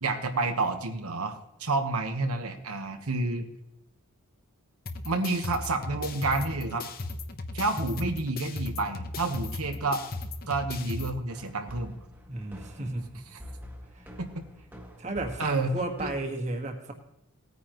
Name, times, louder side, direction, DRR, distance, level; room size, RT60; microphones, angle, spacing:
voice 1, 0.0-3.5 5.0-6.9 7.5-10.0 10.5-11.9 14.2-14.3 15.4-16.1, right 3 dB, 85° right, 5 dB, 1.2 m, -29 dB
sound 1, 4.9-11.1, left 2 dB, 45° left, 0.9 m, -37 dB
sound 2, 11.3-16.3, equal, 10° right, 1.7 m, -46 dB
voice 2, 12.3-13.2 13.9-14.1 15.0-16.9, right 2 dB, 30° right, 3 dB, 1.6 m, -33 dB
18.5 x 9.4 x 3.0 m, 0.83 s
head